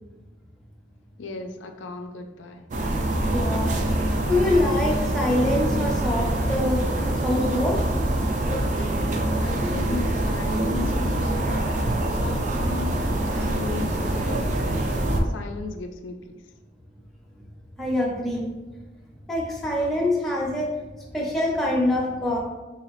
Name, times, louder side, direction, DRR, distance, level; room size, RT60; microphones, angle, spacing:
voice 1, 1.2-2.7 9.4-11.8 12.1-16.4, left 4 dB, 80° left, 5 dB, 0.4 m, -36 dB
sound 1, 2.7-15.2, right 1 dB, 40° right, 0.4 m, -25 dB
voice 2, 3.3-3.8 4.2-6.9 7.2-7.8 17.8-18.5 19.3-20.7 21.1-22.4, left 1 dB, ahead, -4 dB, 0.6 m, -24 dB
3.9 x 2.7 x 3.0 m, 1.2 s
head